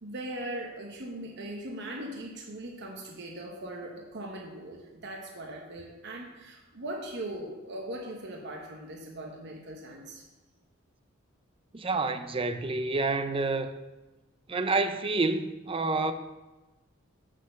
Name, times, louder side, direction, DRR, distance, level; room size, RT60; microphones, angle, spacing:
voice 1, 0.0-10.2, right 1 dB, 55° right, 0 dB, 1.1 m, -40 dB
voice 2, 11.7-13.7 14.5-16.1, right 3 dB, 25° right, 9 dB, 0.6 m, -28 dB
7.5 x 6.4 x 6.8 m, 1.1 s
head